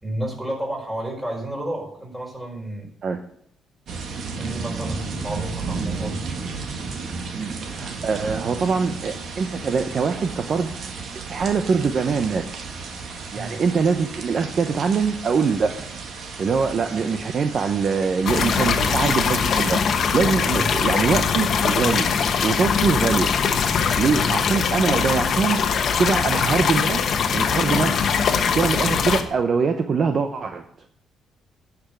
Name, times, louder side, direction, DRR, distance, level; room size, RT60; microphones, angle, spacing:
voice 1, 0.0-2.9 4.4-6.2 13.3-13.6 20.5-20.7 24.2-24.3, right 1 dB, 10° right, -1 dB, 4.7 m, -31 dB
sound 1, 3.9-19.8, right 4 dB, 65° right, 1.6 m, -33 dB
voice 2, 7.4-10.7 11.1-12.6 13.3-15.7 16.4-19.8 20.1-22.1 22.4-23.3 24.0-25.6 26.0-27.0 27.3-28.0 28.5-30.7, right 5 dB, 50° right, 7 dB, 0.8 m, -23 dB
sound 2, 18.3-29.2, left 6 dB, 60° left, 1.1 m, -21 dB
9.9 x 6.1 x 7.5 m, 0.70 s
cardioid pair, 90°, 0 cm